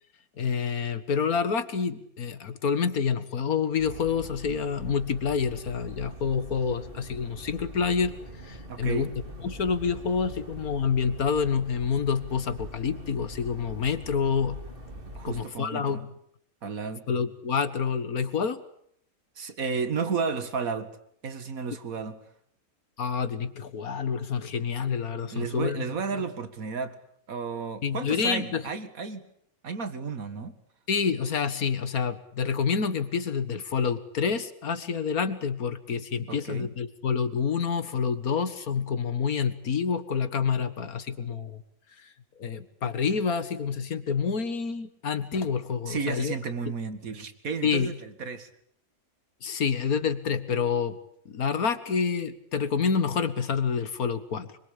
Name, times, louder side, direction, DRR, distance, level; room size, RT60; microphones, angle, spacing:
voice 1, 0.4-8.1 8.4-9.1 9.4-14.6 15.2-16.1 17.1-18.6 23.0-25.9 26.1-26.2 27.8-28.6 30.9-41.6 42.4-46.3 47.6-47.9 49.4-51.0 51.3-54.5, left 6 dB, 85° left, 11 dB, 2.1 m, -28 dB
sound 1, 3.8-15.4, equal, 40° right, 2.6 m, -43 dB
voice 2, 8.7-9.1 15.2-16.0 16.6-17.1 19.4-20.9 21.2-22.2 25.3-27.0 27.3-29.2 29.6-30.5 36.3-36.7 45.9-48.5, right 5 dB, 75° right, 10 dB, 2.4 m, -32 dB
26.0 x 23.0 x 8.5 m, 0.68 s
omnidirectional pair, 1.5 m